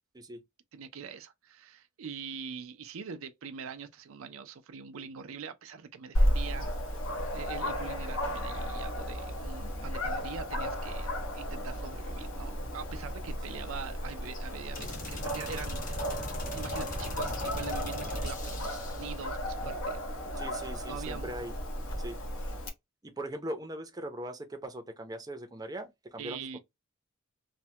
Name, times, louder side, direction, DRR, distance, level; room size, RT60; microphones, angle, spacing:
voice 1, 0.7-11.1 11.3-16.2 16.5-20.0 20.3-21.3 26.2-26.6, right 6 dB, 70° right, 0.5 m, -43 dB
Dog, 6.1-22.7, equal, 70° left, 1.0 m, -34 dB
sound 1, 14.7-19.2, left 1 dB, 40° left, 1.1 m, -40 dB
voice 2, 20.4-21.5 22.0-22.2 23.0-26.6, right 1 dB, 20° right, 0.6 m, -40 dB
3.2 x 2.2 x 2.7 m
head